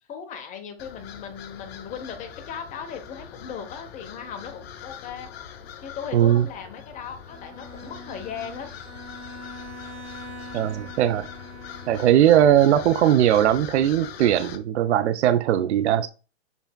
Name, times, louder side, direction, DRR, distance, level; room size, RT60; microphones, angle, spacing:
voice 1, 0.1-5.3 5.8-8.7, left 7 dB, 25° left, 0.8 m, -37 dB
sound 1, 0.8-14.6, left 8 dB, 65° left, 0.8 m, -42 dB
voice 2, 6.1-6.5 10.5-11.3 11.9-16.1, right 11 dB, 80° right, 0.5 m, -19 dB
Bowed string instrument, 7.2-12.5, left 1 dB, 20° right, 2.1 m, -43 dB
7.0 x 3.3 x 2.2 m
hypercardioid pair, 130°, 33 cm